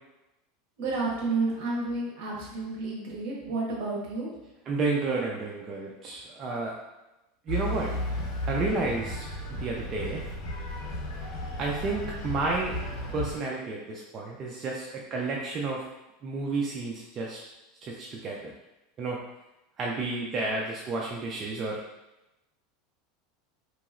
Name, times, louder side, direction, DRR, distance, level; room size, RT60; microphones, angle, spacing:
voice 1, 0.8-4.3, right 3 dB, 65° right, -3 dB, 1.1 m, -30 dB
voice 2, 4.7-6.7 7.5-7.9 8.4-10.2 11.6-12.8 13.1-15.9 16.2-17.4 17.8-18.5 19.0-19.2 19.8-21.8, right 3 dB, 30° right, -2 dB, 0.3 m, -31 dB
sound 1, 7.5-13.4, left 1 dB, 60° left, 1.1 m, -34 dB
2.9 x 2.8 x 2.5 m, 0.97 s
supercardioid pair, 145°, 0 cm